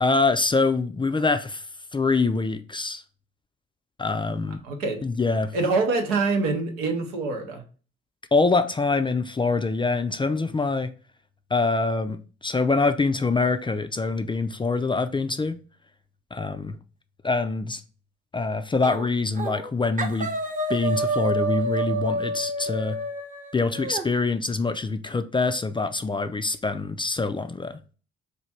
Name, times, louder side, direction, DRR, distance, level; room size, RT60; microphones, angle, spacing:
voice 1, 0.0-1.6 1.9-3.0 4.0-4.6 5.0-5.5 8.3-10.9 11.5-15.6 16.3-16.8 17.2-17.8 18.3-20.3 20.7-23.0 23.5-27.8, left 3 dB, 15° left, 0.3 m, -24 dB
voice 2, 4.6-5.0 5.5-7.6, right 3 dB, 85° right, 0.8 m, -25 dB
sound 1, 18.8-19.1 19.4-19.7 20.0-24.0, right 2 dB, 25° right, 0.8 m, -28 dB
3.2 x 2.4 x 4.1 m
hypercardioid pair, 45°, 30 cm